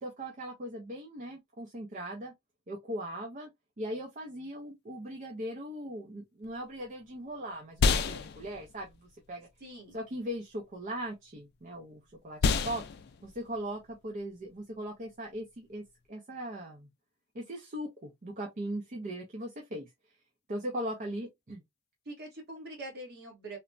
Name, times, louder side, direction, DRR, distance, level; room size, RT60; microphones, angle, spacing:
voice 1, 0.0-2.3 2.7-3.5 3.8-9.5 9.9-12.8 13.2-16.9 17.3-19.9 20.5-21.6, equal, 40° right, 0.5 m, -39 dB
sound 1, 6.4-16.1, left 5 dB, 50° left, 0.3 m, -34 dB
voice 2, 9.6-10.0 22.0-23.6, right 1 dB, 55° right, 1.3 m, -44 dB
3.1 x 2.1 x 2.5 m
head